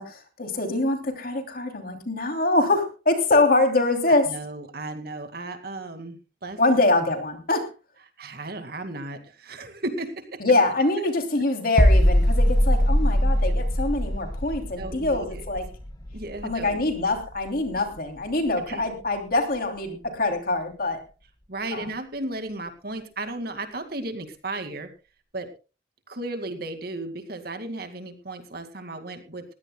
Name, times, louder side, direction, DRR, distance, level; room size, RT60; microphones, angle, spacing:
voice 1, 0.0-4.3 6.6-7.7 10.4-15.6 16.4-21.0 21.7-21.9, left 2 dB, 50° left, 5 dB, 3.1 m, -24 dB
voice 2, 4.1-6.6 8.2-10.4 14.8-15.5 16.1-16.9 18.7-18.8 21.5-24.9 25.3-25.5 26.1-29.4, right 2 dB, 55° right, 7 dB, 2.1 m, -35 dB
sound 1, 11.8-17.5 17.7-18.0, equal, 20° left, 0.9 m, -22 dB
20.5 x 16.0 x 2.3 m, 0.31 s
head